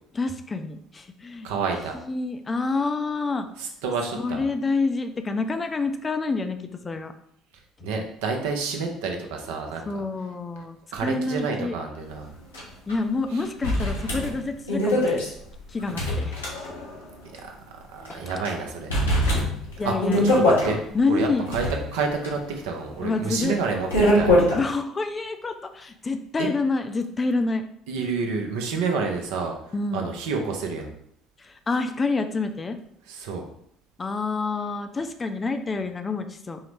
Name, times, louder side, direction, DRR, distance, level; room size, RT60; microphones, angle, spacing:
voice 1, 0.1-1.5 1.9-3.5 4.1-7.1 9.9-11.8 12.9-15.2 15.7-16.4 18.1-18.2 19.8-20.6 20.9-21.6 23.0-23.6 24.5-27.6 29.7-30.1 31.4-32.8 34.0-36.6, left 3 dB, 30° left, 7 dB, 0.4 m, -27 dB
voice 2, 1.4-2.0 3.6-4.4 7.8-9.9 10.9-12.3 13.3-13.4 17.4-17.5 17.9-18.9 19.8-19.9 20.4-20.8 21.1-21.6 21.9-23.9 24.1-24.3 26.4-26.5 27.9-29.5 29.9-30.9 33.1-33.4, right 4 dB, 75° right, 2 dB, 0.5 m, -29 dB
sound 1, 12.5-12.6 12.9-13.0 13.6-17.0 17.3-17.4 18.0-18.5 18.9-20.7 21.3-24.6, left 1 dB, 90° left, 0.8 m, -23 dB
3.8 x 2.0 x 3.1 m, 0.69 s
hypercardioid pair, 60°, 0 cm